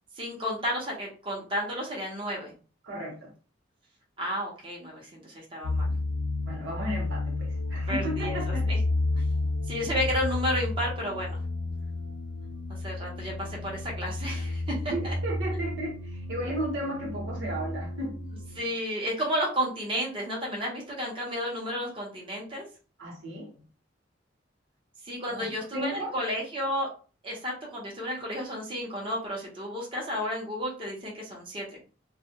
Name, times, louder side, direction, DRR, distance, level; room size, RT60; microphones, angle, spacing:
voice 1, 0.1-2.5 4.2-6.0 6.8-6.9 7.9-8.8 9.1-9.2 9.7-11.4 12.8-15.1 18.5-22.7 25.0-26.9 27.2-31.8, equal, 30° right, 0.8 m, -32 dB
voice 2, 2.8-3.3 6.4-8.8 9.4-9.5 14.9-18.1 23.0-23.5 25.3-26.1, right 1 dB, 85° right, 1.1 m, -34 dB
sound 1, 5.6-18.6, left 2 dB, 80° left, 0.5 m, -31 dB
2.3 x 2.2 x 2.8 m
head